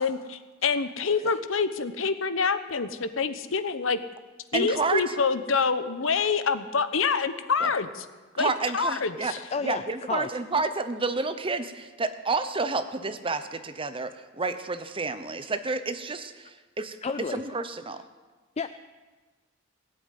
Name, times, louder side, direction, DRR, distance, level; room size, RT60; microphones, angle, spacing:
voice 1, 0.0-4.0 4.5-8.0 8.4-9.4, left 5 dB, 70° left, 11 dB, 0.9 m, -26 dB
voice 2, 4.5-5.1 7.6-7.7 8.3-9.3 9.6-17.0 17.3-18.0, right 3 dB, 25° right, 10 dB, 0.8 m, -30 dB
voice 3, 9.5-10.3 17.0-17.4 18.6-18.7, left 5 dB, 30° left, 10 dB, 0.4 m, -32 dB
18.0 x 7.9 x 9.4 m, 1.3 s
head